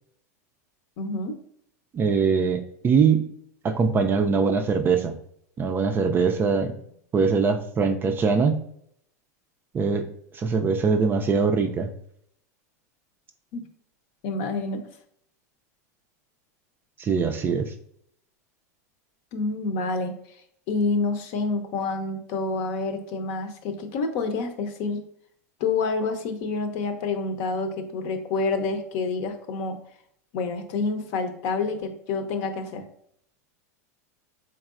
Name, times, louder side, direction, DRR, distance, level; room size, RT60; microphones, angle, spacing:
voice 1, 1.0-1.4 6.3-6.4 13.5-13.6 14.2-14.8 19.3-20.1 20.7-25.0 25.6-29.8 30.3-32.8, left 3 dB, 55° left, 7 dB, 0.7 m, -28 dB
voice 2, 1.9-3.3 3.6-5.1 5.6-6.8 7.1-8.6 9.7-10.1 10.3-11.9 17.0-17.7, right 5 dB, 25° right, 6 dB, 0.4 m, -22 dB
3.8 x 3.1 x 2.4 m, 0.69 s
hypercardioid pair, 110°, 9 cm